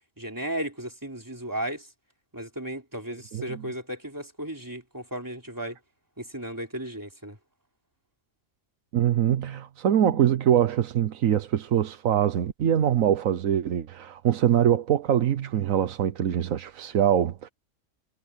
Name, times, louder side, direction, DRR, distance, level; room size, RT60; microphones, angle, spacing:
voice 1, 0.2-1.9 2.3-5.8 6.2-7.4, right 1 dB, 15° right, 3.5 m, -35 dB
voice 2, 3.3-3.6 8.9-17.5, right 10 dB, 85° right, 1.3 m, -23 dB
omnidirectional pair, 1.4 m